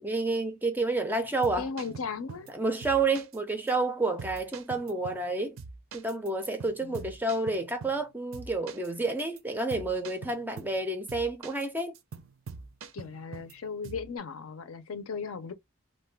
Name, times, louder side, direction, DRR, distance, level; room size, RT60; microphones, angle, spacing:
voice 1, 0.0-1.7 2.5-5.6 5.9-12.0, right 3 dB, 10° right, 0.4 m, -29 dB
sound 1, 1.2-2.5 2.8-3.4 3.7-3.8 4.2-5.3 5.6-8.1 8.3-8.9 9.2-9.4 9.7-10.8 11.1-11.7 11.9-13.5 13.8-14.1, right 5 dB, 65° right, 0.5 m, -44 dB
voice 2, 1.6-2.5 6.8-7.1 12.9-15.5, left 5 dB, 70° left, 0.5 m, -37 dB
2.6 x 2.2 x 3.3 m
head